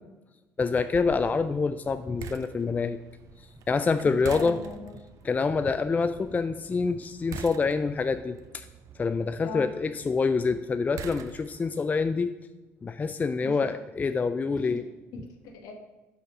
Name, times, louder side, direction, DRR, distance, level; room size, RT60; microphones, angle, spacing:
voice 1, 0.6-3.0 3.7-4.6 5.2-8.7 9.0-12.3 12.8-14.8, left 4 dB, 25° left, 10 dB, 0.3 m, -26 dB
sound 1, 0.9-11.8, right 6 dB, 55° right, 0.5 m, -46 dB
voice 2, 4.0-4.9 9.4-9.7 13.4-13.6 14.6-14.7 15.1-15.7, left 3 dB, 70° left, 3 dB, 1.2 m, -39 dB
5.5 x 5.0 x 5.4 m, 1.1 s
hypercardioid pair, 65°, 7 cm